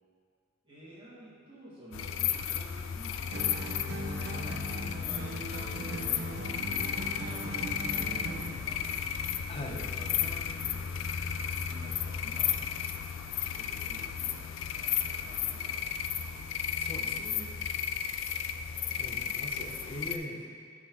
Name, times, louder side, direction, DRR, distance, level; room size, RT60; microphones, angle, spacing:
voice 1, 0.6-3.5 3.8-4.7 4.9-8.8 9.5-10.9 11.2-12.7 13.4-14.4 14.7-16.5, equal, 25° right, -9 dB, 1.6 m, -50 dB
sound 1, 1.9-20.2, left 8 dB, 75° left, 0.3 m, -34 dB
sound 2, 3.3-8.6, right 1 dB, 55° right, 0.6 m, -39 dB
voice 2, 9.5-9.8 16.8-17.6 19.0-20.5, left 1 dB, 30° left, 0 dB, 0.7 m, -41 dB
8.5 x 3.8 x 4.4 m, 2.2 s
head